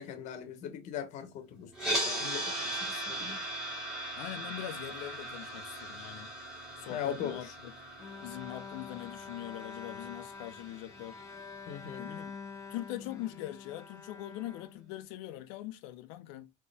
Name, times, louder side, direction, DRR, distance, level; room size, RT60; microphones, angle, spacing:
voice 1, 0.0-3.4 6.9-7.4 11.7-12.1, left 8 dB, 50° left, 0.9 m, -40 dB
sound 1, 1.7-11.9, right 1 dB, 5° right, 2.0 m, -39 dB
voice 2, 4.2-6.3 6.8-7.7 8.2-11.2 12.0-12.3 12.7-16.5, left 14 dB, 90° left, 0.6 m, -42 dB
Bowed string instrument, 8.0-15.4, left 5 dB, 20° left, 0.4 m, -46 dB
4.2 x 3.0 x 3.4 m
cardioid pair, 155°, 15 cm